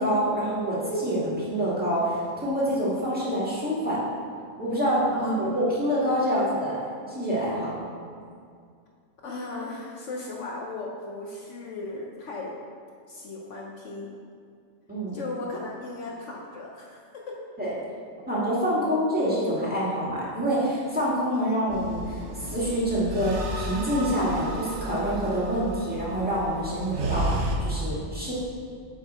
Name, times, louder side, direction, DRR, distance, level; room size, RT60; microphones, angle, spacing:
voice 1, 0.0-4.0 4.6-6.8 7.1-7.7 14.9-15.2 17.6-17.7 18.3-28.3, equal, 5° right, -8 dB, 1.7 m, -26 dB
voice 2, 5.1-5.5 9.2-12.6 13.1-14.1 15.1-17.4, left 2 dB, 65° left, -2 dB, 1.1 m, -36 dB
sound 1, 21.7-27.6, right 1 dB, 75° right, 1.3 m, -33 dB
7.5 x 4.9 x 4.3 m, 2.2 s
omnidirectional pair, 1.4 m